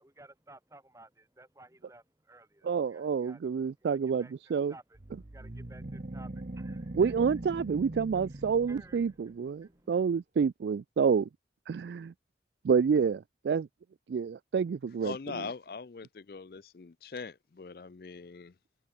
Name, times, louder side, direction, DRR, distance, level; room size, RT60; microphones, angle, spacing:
voice 1, 0.0-3.4 3.8-4.3 4.7-5.0 5.3-7.1 8.7-9.0 9.3-9.9, right 2 dB, 15° right, 3.5 m, -55 dB
voice 2, 2.6-4.7 6.9-11.3 11.7-12.1 12.6-13.7 14.1-15.4, right 6 dB, 75° right, 0.3 m, -28 dB
sound 1, 4.9-9.3, right 1 dB, 45° right, 0.9 m, -41 dB
voice 3, 15.0-18.5, left 4 dB, 55° left, 0.5 m, -42 dB
head